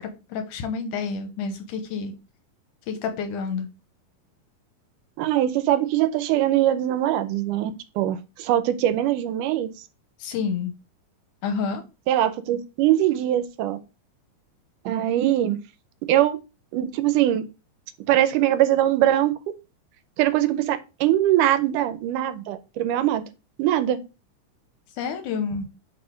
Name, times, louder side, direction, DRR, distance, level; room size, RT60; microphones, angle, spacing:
voice 1, 0.0-2.1 2.9-3.7 10.2-10.7 11.4-11.8 25.0-25.6, left 5 dB, 75° left, 7 dB, 2.4 m, -29 dB
voice 2, 5.2-9.7 12.1-13.8 14.9-15.6 16.1-16.4 16.7-17.5 18.1-19.3 20.2-23.2 23.6-24.0, right 12 dB, 80° right, 12 dB, 2.1 m, -22 dB
5.1 x 4.1 x 5.0 m, 0.28 s
omnidirectional pair, 3.7 m